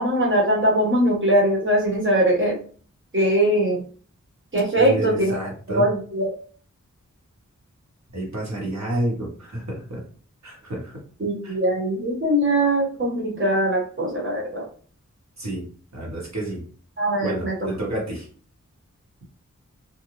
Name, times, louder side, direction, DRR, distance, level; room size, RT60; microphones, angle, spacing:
voice 1, 0.0-2.5 3.1-3.8 4.5-5.4 5.7-6.3 11.2-14.6 17.0-17.5, right 1 dB, 40° right, -2 dB, 1.1 m, -21 dB
voice 2, 4.7-5.8 8.1-10.0 10.4-11.0 11.4-11.6 15.4-15.6 15.9-16.6 17.2-18.3, right 1 dB, 60° right, -3 dB, 1.2 m, -29 dB
2.5 x 2.2 x 2.9 m, 0.43 s
wide cardioid pair, 75°, 30 cm